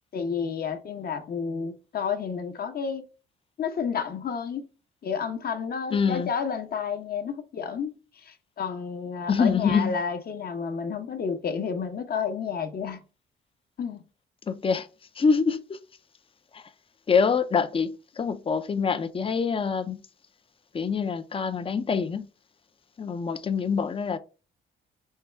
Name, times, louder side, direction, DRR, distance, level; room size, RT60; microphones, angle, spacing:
voice 1, 0.1-3.0 3.6-4.6 5.0-8.0 8.2-13.0 13.8-14.0, left 6 dB, 50° left, 0.9 m, -31 dB
voice 2, 5.9-6.3 9.3-10.0 14.5-14.9 15.2-15.8 16.5-16.6 17.1-20.0 20.7-22.3 23.0-24.2, left 5 dB, 25° left, 0.5 m, -25 dB
5.5 x 2.3 x 3.3 m
cardioid pair, 90°, 20 cm